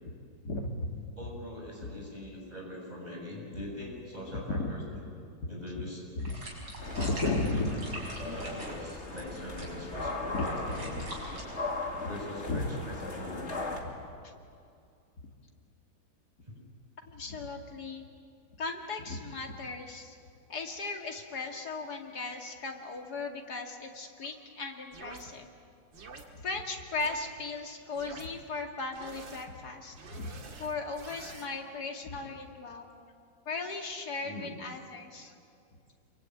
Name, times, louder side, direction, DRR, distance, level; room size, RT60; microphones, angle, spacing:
voice 1, 0.4-0.9 1.8-1.9 4.5-4.7 5.4-5.5 6.2-6.3 6.8-7.7 10.3-10.5 12.0-12.1 12.5-12.7 13.8-13.9 14.2-14.3 17.1-18.0 18.6-20.2 20.5-25.5 26.3-30.3 30.6-32.9 33.5-35.3, left 3 dB, 55° left, 3 dB, 2.9 m, -36 dB
voice 2, 1.2-5.0 5.5-6.0 6.9-7.5 8.2-11.0 12.1-13.5 16.5-16.6 34.2-34.5, left 1 dB, 20° right, -2 dB, 6.9 m, -42 dB
sound 1, 6.2-11.4, right 1 dB, 65° right, 6.9 m, -44 dB
sound 2, 6.8-13.8, left 2 dB, 35° left, 2.8 m, -38 dB
sound 3, 24.9-25.2 25.9-26.2 27.0-27.2 27.9-28.3 28.9-29.5 29.9-31.5, right 4 dB, 80° right, 2.8 m, -47 dB
27.5 x 23.5 x 9.3 m, 2.4 s
omnidirectional pair, 2.0 m